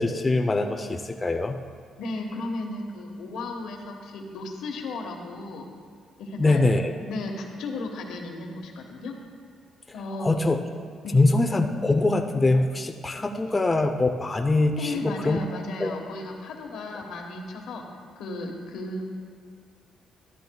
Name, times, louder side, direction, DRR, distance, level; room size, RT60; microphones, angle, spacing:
voice 1, 0.0-1.6 6.4-6.9 10.2-10.6 11.1-15.4 15.8-15.9, left 2 dB, 20° left, 3 dB, 0.6 m, -23 dB
voice 2, 2.0-5.7 6.2-6.6 7.1-9.2 9.9-10.4 11.0-11.2 13.4-13.5 14.8-17.9 18.2-19.0, left 2 dB, 80° left, 2 dB, 1.3 m, -34 dB
13.0 x 13.0 x 2.3 m, 2.2 s
cardioid pair, 90°, 0 cm